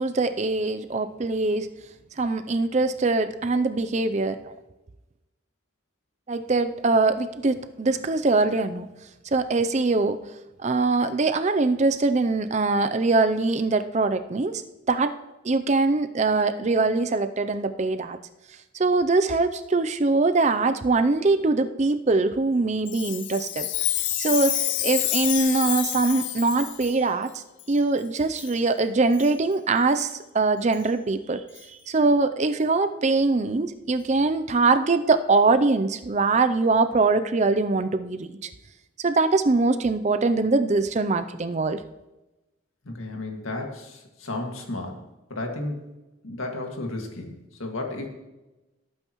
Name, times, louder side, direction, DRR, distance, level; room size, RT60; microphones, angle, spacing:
voice 1, 0.0-1.7 2.2-4.4 6.3-8.9 9.3-10.2 10.6-14.6 14.9-15.1 15.4-18.2 18.8-23.7 24.2-24.6 24.8-27.3 27.7-30.1 30.3-31.4 31.9-38.3 39.0-41.8, right 3 dB, 35° right, 10 dB, 0.5 m, -22 dB
Chime, 22.9-26.9 27.6-27.7 28.4-28.6 29.1-29.3 30.0-30.1 30.7-30.8 31.6-31.7, left 13 dB, 60° left, 0.6 m, -28 dB
voice 2, 42.8-45.0 45.3-45.8 46.2-48.1, left 2 dB, 85° left, 2 dB, 2.0 m, -33 dB
17.5 x 8.9 x 3.1 m, 1.0 s
head